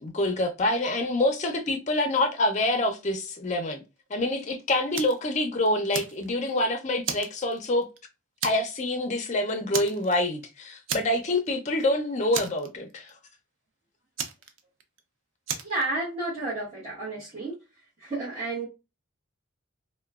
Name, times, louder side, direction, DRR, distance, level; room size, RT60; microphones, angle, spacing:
voice 1, 0.0-3.8 4.1-7.9 8.4-13.1, left 1 dB, 35° left, 0.5 m, -26 dB
Fire, 4.9-5.3 5.7-6.6 7.0-8.0 8.4-8.8 9.1-9.3 9.7-10.4 10.9-11.5 11.7-11.8 12.3-13.1 14.2-15.0 15.5-15.8, right 7 dB, 70° right, 0.4 m, -34 dB
voice 2, 15.6-17.5 18.0-18.7, right 2 dB, 25° right, 1.0 m, -31 dB
3.0 x 2.1 x 2.3 m
head